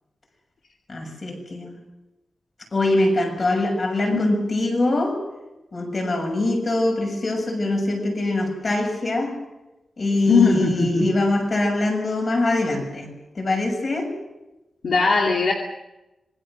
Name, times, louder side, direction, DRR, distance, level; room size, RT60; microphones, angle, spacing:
voice 1, 0.9-1.8 2.7-5.2 5.7-9.4 10.0-14.1, left 2 dB, 35° left, 3 dB, 6.8 m, -23 dB
voice 2, 10.3-11.0 14.8-15.5, left 4 dB, 65° left, 0 dB, 2.5 m, -19 dB
26.5 x 22.0 x 6.4 m, 1.0 s
wide cardioid pair, 175°, 0 cm